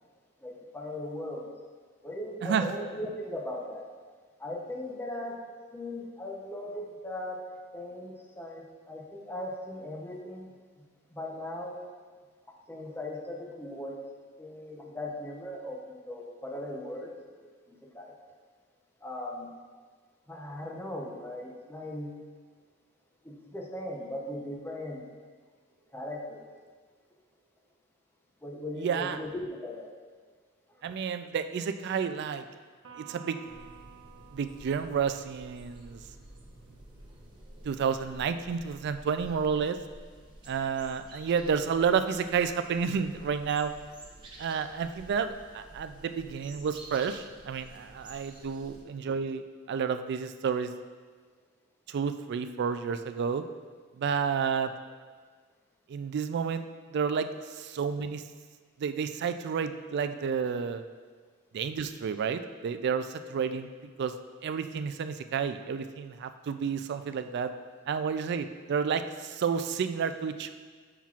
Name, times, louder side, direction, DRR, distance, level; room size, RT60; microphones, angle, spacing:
voice 1, 0.4-1.5 2.0-3.9 4.4-5.4 5.7-7.4 7.7-10.5 11.1-11.9 12.7-14.0 14.4-17.1 17.4-18.1 19.0-19.5 20.3-22.2 23.2-25.1 25.9-26.5 28.4-29.9 30.7-30.8 48.5-48.6, left 1 dB, 10° left, -1 dB, 0.7 m, -38 dB
voice 2, 28.8-29.2 30.8-32.5 33.0-33.4 34.3-36.0 37.6-39.8 40.5-43.7 44.4-50.7 51.9-53.4 54.0-54.7 55.9-58.2 58.8-60.8 61.5-63.7 64.0-64.1 64.4-67.5 67.9-70.5, right 6 dB, 55° right, 10 dB, 0.3 m, -30 dB
Electric guitar, 32.8-36.4, right 8 dB, 70° right, 0.9 m, -53 dB
sound 1, 33.4-48.8, right 1 dB, 20° right, 0.9 m, -51 dB
7.2 x 5.8 x 2.4 m, 1.5 s
head